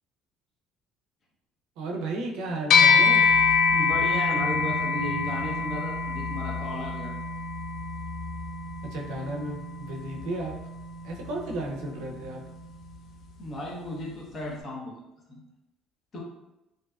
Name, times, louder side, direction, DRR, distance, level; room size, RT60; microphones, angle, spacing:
voice 1, 1.8-3.2 8.8-10.5 11.0-12.4, right 2 dB, 85° right, 0 dB, 0.4 m, -34 dB
sound 1, 2.7-12.3, left 5 dB, 60° left, 0.3 m, -25 dB
voice 2, 3.7-7.1 13.4-15.0 15.3-15.4 16.1-16.2, equal, 40° left, -2 dB, 0.7 m, -35 dB
2.6 x 2.2 x 2.2 m, 0.93 s
cardioid pair, 115°, 0 cm